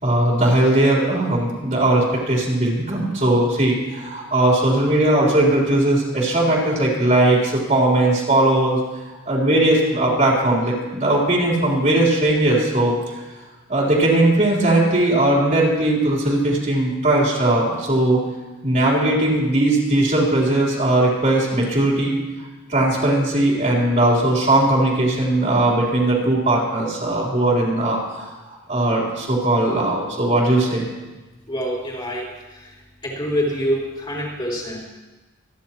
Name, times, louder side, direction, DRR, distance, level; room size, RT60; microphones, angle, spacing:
voice 1, 0.0-8.8 9.3-13.2 13.7-18.2 18.6-22.2 22.7-28.3 28.7-30.9, right 1 dB, 35° right, -4 dB, 3.9 m, -19 dB
voice 2, 31.5-32.3 33.0-34.8, equal, 25° left, -5 dB, 4.2 m, -25 dB
26.5 x 11.0 x 3.1 m, 1.2 s
head